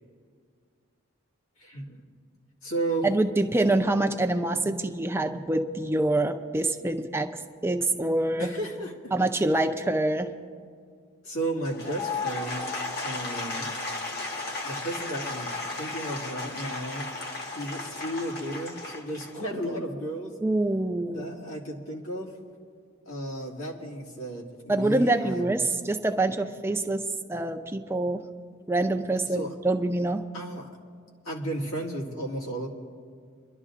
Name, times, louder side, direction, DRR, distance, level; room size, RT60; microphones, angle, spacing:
voice 1, 1.6-2.0 2.6-3.1 8.4-9.1 11.2-13.7 14.6-15.5 15.8-17.1 17.5-20.3 21.1-22.3 23.1-25.5 29.3-29.5 30.3-30.7 31.2-32.7, right 1 dB, 90° left, -2 dB, 2.1 m, -34 dB
voice 2, 3.0-8.5 9.1-10.3 20.4-21.3 24.7-27.0 27.3-28.2 28.7-30.2, right 2 dB, 10° right, 6 dB, 0.4 m, -26 dB
Applause / Crowd, 11.6-19.8, left 3 dB, 50° left, 1.2 m, -34 dB
26.5 x 11.5 x 2.5 m, 2.1 s
head